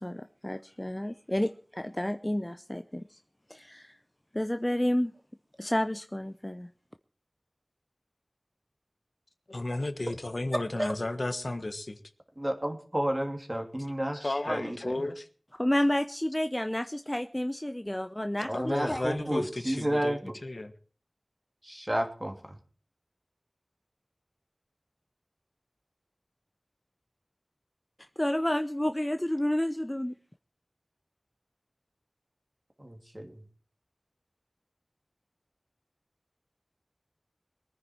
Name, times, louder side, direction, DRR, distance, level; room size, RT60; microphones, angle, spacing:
voice 1, 0.0-3.2 3.5-4.0 4.3-5.1 5.6-6.7 15.6-19.1 28.0-30.1, left 1 dB, 25° left, 10 dB, 0.6 m, -30 dB
voice 2, 9.5-12.0 14.2-15.3 18.5-20.7, left 2 dB, 70° left, 10 dB, 1.3 m, -33 dB
voice 3, 12.4-15.0 18.4-20.3 21.6-22.3 32.8-33.3, right 1 dB, 25° right, 4 dB, 2.7 m, -31 dB
22.0 x 9.7 x 4.4 m, 0.42 s
wide cardioid pair, 40°, 0 cm